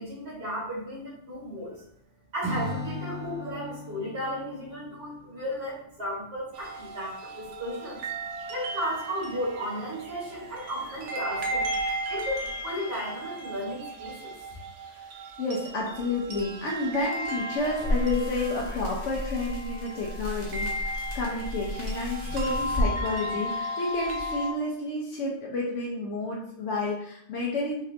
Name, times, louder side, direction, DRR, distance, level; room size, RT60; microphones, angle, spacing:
voice 1, 0.0-1.8 2.3-8.1 8.5-11.7 12.1-14.3, equal, 60° right, -8 dB, 2.0 m, -34 dB
Acoustic guitar / Strum, 2.4-5.7, left 1 dB, 25° right, 1.0 m, -37 dB
sound 1, 6.5-24.5, equal, 80° right, 1.0 m, -35 dB
voice 2, 15.4-27.8, left 2 dB, 85° left, -3 dB, 1.1 m, -30 dB
sound 2, 17.6-22.9, left 1 dB, 35° left, 1.4 m, -33 dB
4.9 x 2.8 x 3.2 m, 0.72 s
omnidirectional pair, 1.2 m